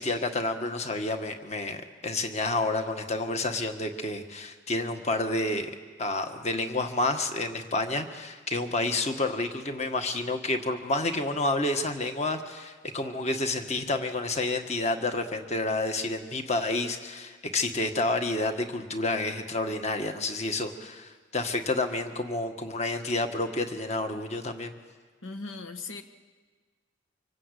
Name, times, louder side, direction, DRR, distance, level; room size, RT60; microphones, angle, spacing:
voice 1, 0.0-5.7 6.0-24.7, left 2 dB, 35° left, 6 dB, 1.6 m, -29 dB
voice 2, 25.2-26.0, left 3 dB, 85° left, 8 dB, 1.4 m, -38 dB
25.5 x 23.5 x 8.4 m, 1.5 s
head